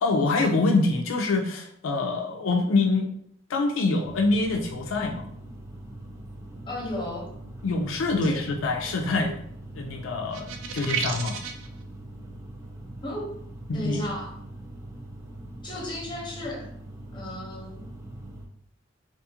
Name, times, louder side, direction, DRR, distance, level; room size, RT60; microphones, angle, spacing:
voice 1, 0.0-3.1 3.5-5.3 7.6-9.4 9.7-11.4 13.7-14.1, left 3 dB, 85° left, 2 dB, 0.4 m, -25 dB
sound 1, 4.0-18.5, right 1 dB, 15° right, 0.4 m, -42 dB
voice 2, 6.7-7.3 8.1-8.3 8.8-9.0 13.0-13.3 13.7-14.3 15.6-16.7 17.1-17.9, left 1 dB, 25° left, -3 dB, 0.8 m, -34 dB
sound 2, 10.3-11.7, right 6 dB, 80° right, 0.4 m, -31 dB
2.5 x 2.4 x 2.8 m, 0.66 s
head